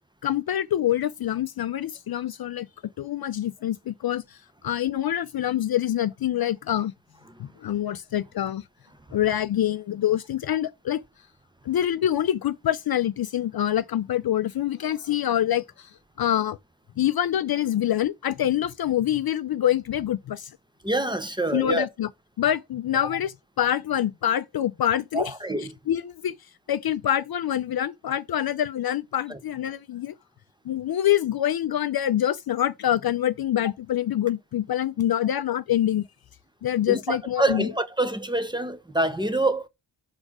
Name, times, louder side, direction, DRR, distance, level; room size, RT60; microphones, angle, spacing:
voice 1, 0.2-2.7 3.0-4.4 4.6-6.9 7.4-8.6 9.1-11.0 11.7-15.9 16.2-16.6 17.0-20.5 21.5-22.1 22.4-25.3 25.9-26.3 26.7-30.1 30.7-36.1 36.6-37.7, left 11 dB, 55° left, 0.5 m, -25 dB
voice 2, 20.8-21.9 25.1-25.7 29.3-29.4 36.9-39.7, right 2 dB, 10° right, 0.8 m, -26 dB
5.9 x 4.2 x 4.8 m
cardioid pair, 80°, 47 cm